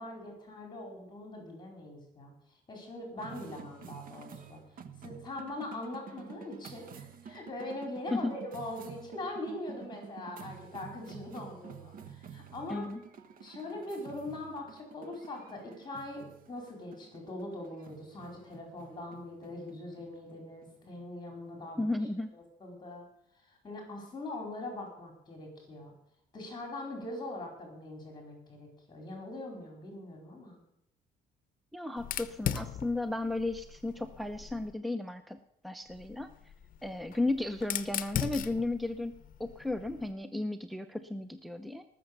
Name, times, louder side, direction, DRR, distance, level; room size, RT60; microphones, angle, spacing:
voice 1, 0.0-2.3 2.7-4.6 5.0-12.9 13.4-21.9 22.3-23.0 23.4-25.9 26.3-30.6, left 2 dB, 25° left, 1 dB, 4.4 m, -42 dB
sound 1, 3.2-21.8, right 7 dB, 55° right, 1.2 m, -50 dB
voice 2, 12.7-13.0 21.8-22.3 31.7-35.4 35.6-36.3 36.8-39.1 39.4-41.8, left 2 dB, ahead, 10 dB, 0.7 m, -34 dB
Fire, 32.0-34.7 35.9-40.1, left 10 dB, 55° left, 0.8 m, -39 dB
19.0 x 7.1 x 6.6 m, 0.79 s
cardioid pair, 110°, 17 cm